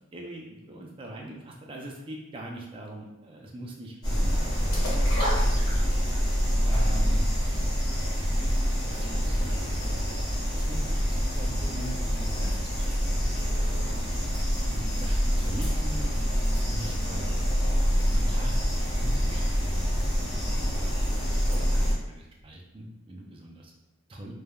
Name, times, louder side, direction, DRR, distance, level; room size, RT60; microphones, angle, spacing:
voice 1, 0.1-5.6 6.6-7.3 8.9-13.5 14.7-16.1 16.7-18.6 19.0-20.7 21.1-23.7 24.1-24.3, right 1 dB, 25° right, -1 dB, 0.4 m, -42 dB
sound 1, 4.0-21.9, equal, 20° left, 0.8 m, -26 dB
sound 2, 4.7-6.3 6.6-6.7, equal, 85° left, 1.3 m, -32 dB
3.3 x 2.1 x 2.3 m, 0.97 s
head